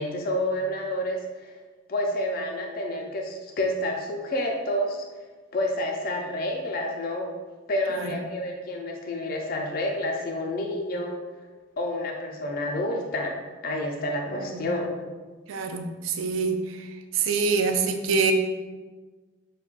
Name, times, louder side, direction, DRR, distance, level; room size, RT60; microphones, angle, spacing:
voice 1, 0.0-1.5 1.9-5.0 5.5-7.3 7.7-11.2 11.8-13.4 13.6-14.9, left 1 dB, 45° left, 1 dB, 0.4 m, -29 dB
voice 2, 14.4-14.7 15.5-16.9 17.1-18.3, right 4 dB, 85° right, 6 dB, 0.4 m, -26 dB
5.8 x 2.2 x 2.4 m, 1.3 s
head